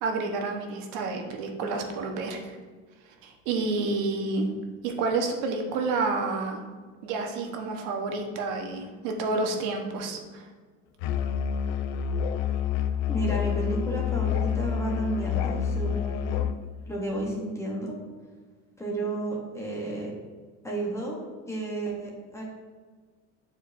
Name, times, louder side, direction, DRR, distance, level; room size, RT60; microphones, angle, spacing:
voice 1, 0.0-2.6 3.2-4.5 4.8-6.6 7.0-10.4, right 3 dB, 70° right, 3 dB, 1.0 m, -29 dB
Musical instrument, 11.0-16.6, left 8 dB, 80° left, 0.6 m, -28 dB
voice 2, 13.1-16.4 16.9-18.0 18.8-20.2 20.6-21.2 21.5-22.4, right 2 dB, 10° left, -3 dB, 0.8 m, -32 dB
8.9 x 4.5 x 2.5 m, 1.5 s
cardioid pair, 165°, 37 cm